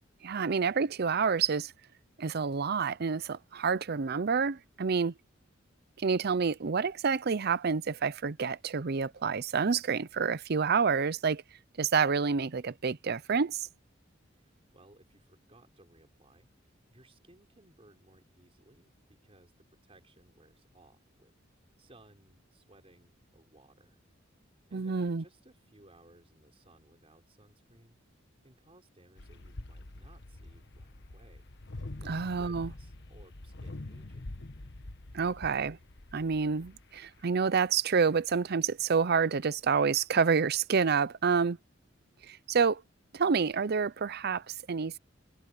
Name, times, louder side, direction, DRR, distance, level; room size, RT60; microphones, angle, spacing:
voice 1, 0.2-1.7 2.2-5.1 6.0-11.4 11.8-13.7 24.7-25.2 32.1-32.7 35.1-35.8 36.1-41.6 42.2-42.8 43.1-45.0, right 5 dB, 55° right, 0.6 m, -28 dB
voice 2, 14.3-21.3 21.6-24.0 24.7-28.0 28.4-31.5 31.9-34.3, right 1 dB, 30° right, 5.0 m, -61 dB
sound 1, 29.2-37.3, left 2 dB, 60° left, 1.3 m, -45 dB
head